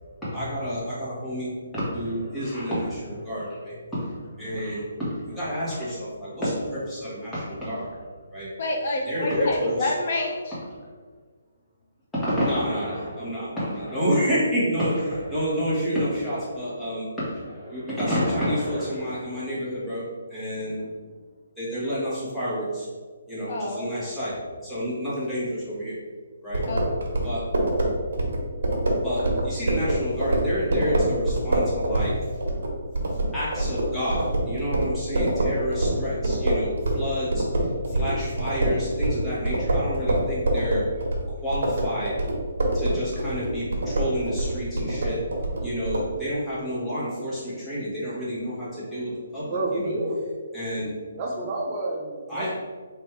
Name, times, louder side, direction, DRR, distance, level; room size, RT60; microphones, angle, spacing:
voice 1, 0.2-8.5 9.1-9.9 12.1-20.0 20.3-20.9 21.6-22.9 23.3-24.3 24.6-26.0 26.4-26.6 27.2-27.4 29.0-32.1 33.1-40.8 41.3-42.5 42.7-45.2 45.6-50.0 50.5-50.9 52.3-52.5, equal, 5° left, -10 dB, 1.2 m, -29 dB
voice 2, 8.6-10.6 23.4-24.2 26.7-27.1 38.0-38.1, left 2 dB, 50° left, 1 dB, 0.5 m, -28 dB
sound 1, 26.5-37.1 37.3-46.1, right 1 dB, 70° right, 1.1 m, -25 dB
voice 3, 49.5-50.2 51.2-52.5, right 2 dB, 25° right, -2 dB, 0.5 m, -29 dB
3.4 x 2.6 x 4.4 m, 1.5 s
hypercardioid pair, 165°, 0 cm